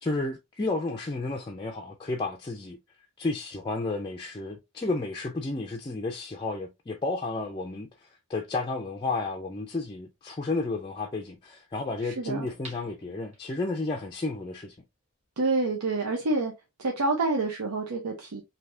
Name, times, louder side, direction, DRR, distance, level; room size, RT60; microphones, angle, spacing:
voice 1, 0.0-2.8 3.2-7.9 8.3-14.7, left 3 dB, 20° left, 0.4 m, -32 dB
voice 2, 12.0-12.5 15.4-16.5 16.8-18.4, right 3 dB, 90° right, 0.7 m, -27 dB
sound 1, 12.5-13.8 14.3-14.4, right 1 dB, 30° right, 1.5 m, -48 dB
3.3 x 2.7 x 2.6 m
head